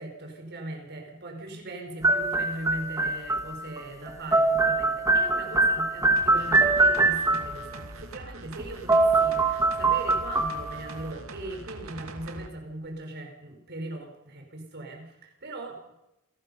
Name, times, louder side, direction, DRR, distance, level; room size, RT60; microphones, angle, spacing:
voice 1, 0.0-15.0 15.4-15.8, right 2 dB, 55° right, 2 dB, 4.9 m, -39 dB
sound 1, 2.0-3.8 4.1-7.7 8.6-8.7 8.9-11.0, right 2 dB, 15° right, 2.3 m, -23 dB
sound 2, 6.2-12.5 12.8-12.9, right 2 dB, 90° right, 2.2 m, -43 dB
27.5 x 18.0 x 5.6 m, 0.91 s
head